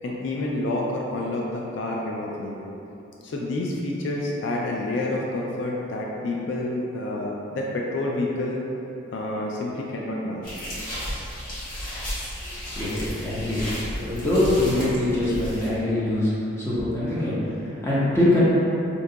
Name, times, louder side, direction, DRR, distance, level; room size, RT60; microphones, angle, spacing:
voice 1, 0.0-2.6 3.2-8.6 9.1-10.6, left 2 dB, 65° left, -2 dB, 0.3 m, -28 dB
sound 1, 10.4-15.7, equal, 45° left, 0.9 m, -33 dB
voice 2, 12.7-16.3 16.6-18.4, left 1 dB, 15° left, -10 dB, 0.6 m, -24 dB
2.7 x 2.2 x 3.8 m, 2.9 s
head